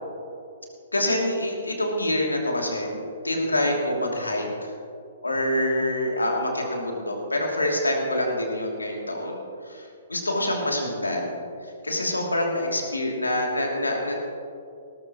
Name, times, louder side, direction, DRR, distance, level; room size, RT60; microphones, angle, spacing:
voice 1, 0.9-4.7 5.2-11.4 11.8-14.2, left 1 dB, 85° left, 0 dB, 2.8 m, -26 dB
18.5 x 13.5 x 3.1 m, 2.6 s
figure-of-eight pair, 125°, 0 cm